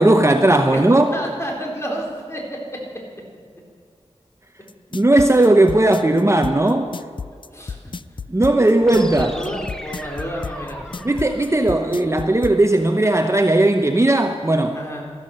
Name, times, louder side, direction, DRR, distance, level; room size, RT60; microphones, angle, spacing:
voice 1, 0.0-1.1 4.9-6.9 8.3-9.3 11.0-14.8, right 1 dB, 25° right, 6 dB, 0.8 m, -16 dB
voice 2, 0.7-2.6 7.5-7.8 8.1-8.2 8.9-11.0 14.7-15.1, equal, 25° left, -1 dB, 4.0 m, -30 dB
sound 1, 4.7-12.6, left 5 dB, 45° left, 0.4 m, -32 dB
sound 2, 8.8-12.8, equal, 5° left, 1.3 m, -38 dB
13.5 x 13.0 x 6.5 m, 2.2 s
wide cardioid pair, 60°, 12 cm